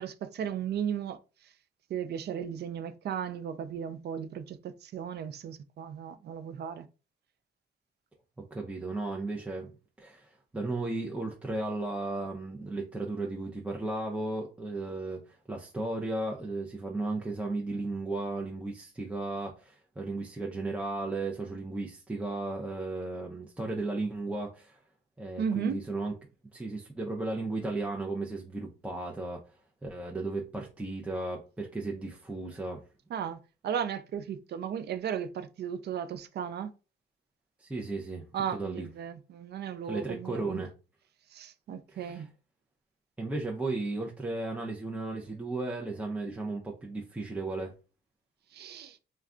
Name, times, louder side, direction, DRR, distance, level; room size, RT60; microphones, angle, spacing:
voice 1, 0.0-1.5 1.9-6.9 25.4-25.8 33.1-36.7 38.3-40.7 41.3-42.3 48.5-49.0, right 8 dB, 55° right, 0.4 m, -35 dB
voice 2, 8.5-9.7 10.0-24.8 25.2-26.1 26.5-29.6 29.8-32.8 37.6-38.2 38.5-38.9 39.9-40.7 41.9-42.2 43.2-47.7, right 2 dB, 5° right, 0.5 m, -35 dB
2.3 x 2.2 x 3.6 m
cardioid pair, 90°, 20 cm